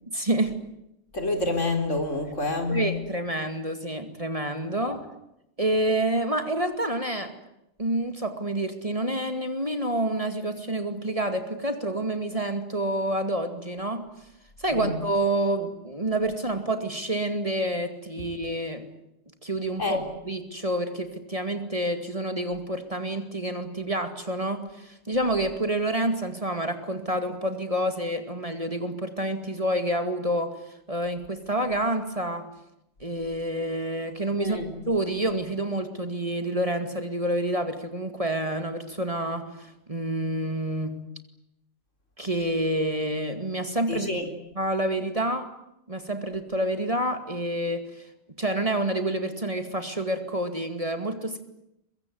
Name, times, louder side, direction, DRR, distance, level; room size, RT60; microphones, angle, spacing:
voice 1, 0.1-0.6 2.7-5.0 5.6-7.3 7.8-14.0 14.6-18.9 19.4-30.6 30.9-32.5 33.0-34.6 34.9-41.0 42.2-44.1 44.5-45.5 45.9-48.0 48.4-51.4, right 1 dB, 25° right, 7 dB, 2.3 m, -28 dB
voice 2, 1.1-2.9 4.9-5.0 14.7-14.9 19.8-20.0 34.4-34.7 43.9-44.3, left 2 dB, 70° left, 4 dB, 4.4 m, -28 dB
23.5 x 22.5 x 9.5 m, 0.83 s
omnidirectional pair, 1.3 m